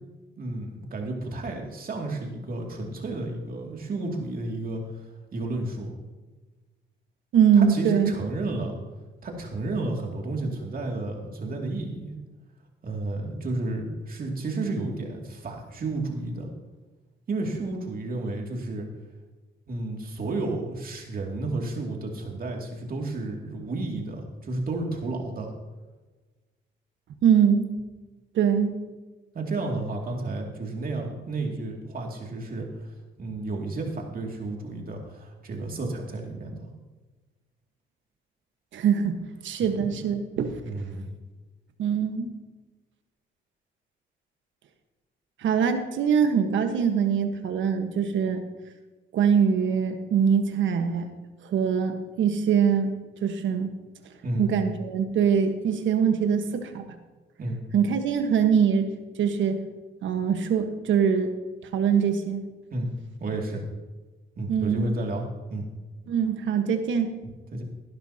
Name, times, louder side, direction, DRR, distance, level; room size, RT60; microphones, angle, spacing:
voice 1, 0.4-5.1 5.3-5.9 7.6-8.8 9.2-12.2 12.8-16.5 17.3-18.9 19.7-25.5 29.3-36.7 40.7-41.1 54.2-54.5 57.4-57.6 62.7-62.9 63.2-63.6 64.4-65.7 67.5-67.6, right 2 dB, 45° right, 1 dB, 2.5 m, -32 dB
voice 2, 7.3-8.1 27.2-27.7 28.3-28.8 38.7-40.6 41.8-42.3 45.4-48.4 49.1-51.1 51.4-52.9 53.2-53.7 54.4-57.0 57.7-58.9 59.2-59.6 60.0-61.3 61.7-62.4 64.5-64.8 66.1-67.1, right 7 dB, 75° right, 7 dB, 1.4 m, -23 dB
16.0 x 11.5 x 2.9 m, 1.2 s
cardioid pair, 90°, 20 cm